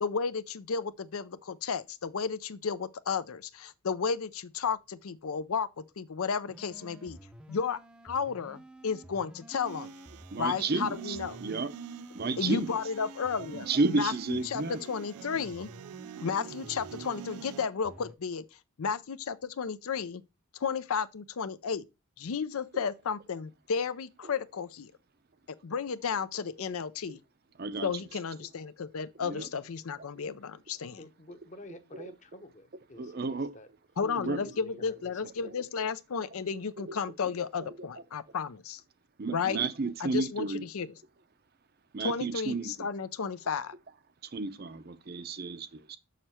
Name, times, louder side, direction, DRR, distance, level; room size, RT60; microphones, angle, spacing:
voice 1, 0.0-7.2 7.5-7.8 8.0-9.9 10.4-11.4 12.4-15.7 16.2-18.4 18.8-20.2 20.6-21.8 22.2-24.9 25.6-27.2 27.8-31.0 34.0-38.8 39.3-39.6 40.0-40.9 42.0-43.7, left 6 dB, 70° left, 0.5 m, -33 dB
sound 1, 6.5-18.1, equal, 5° right, 0.6 m, -50 dB
sound 2, 9.7-17.7, right 9 dB, 85° right, 0.3 m, -46 dB
voice 2, 10.3-11.7 12.1-12.8 13.5-14.8 27.6-27.9 29.2-29.5 33.0-33.5 34.1-34.4 35.2-35.5 36.8-37.0 37.2-37.3 37.6-37.9 39.2-40.6 41.9-42.9 44.3-46.0, right 3 dB, 45° right, 0.6 m, -32 dB
voice 3, 31.0-33.7 34.0-35.5, left 1 dB, 35° left, 1.0 m, -50 dB
6.6 x 6.5 x 4.3 m
head